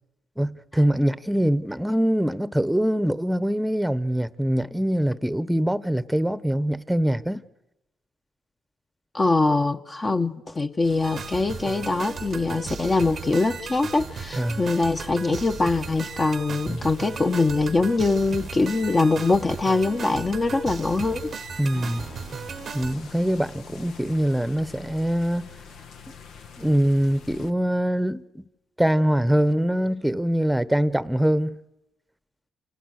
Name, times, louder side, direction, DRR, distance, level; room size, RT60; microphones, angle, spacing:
voice 1, 0.4-7.4 14.4-14.6 16.7-16.8 21.6-22.1 22.7-25.5 26.6-28.4 28.8-31.5, equal, 5° right, 1.0 m, -23 dB
voice 2, 9.1-21.3, left 3 dB, 25° left, 1.1 m, -23 dB
sound 1, 10.8-27.5, left 6 dB, 85° left, 1.7 m, -46 dB
sound 2, 11.0-22.9, right 6 dB, 50° right, 0.9 m, -36 dB
Acoustic guitar / Strum, 21.7-25.7, left 5 dB, 60° left, 6.4 m, -50 dB
29.0 x 28.0 x 6.6 m
cardioid pair, 90°, 0 cm